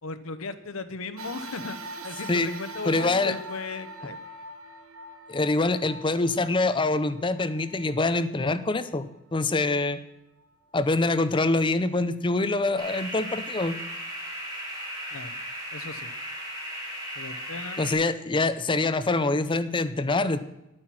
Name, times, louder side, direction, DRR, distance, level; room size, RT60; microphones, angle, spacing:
voice 1, 0.0-1.8 2.0-4.2 15.1-15.3 15.7-16.1 17.1-17.9, left 3 dB, 75° left, 11 dB, 0.9 m, -37 dB
sound 1, 1.2-9.8 10.4-10.5 11.6-11.7, right 1 dB, 85° right, 1.1 m, -43 dB
voice 2, 2.9-3.3 5.3-9.1 9.3-10.0 10.7-13.7 17.8-20.4, left 2 dB, 25° left, 12 dB, 0.5 m, -25 dB
sound 2, 12.8-17.9, equal, 20° right, 3.7 m, -36 dB
10.5 x 8.8 x 6.0 m, 0.92 s
head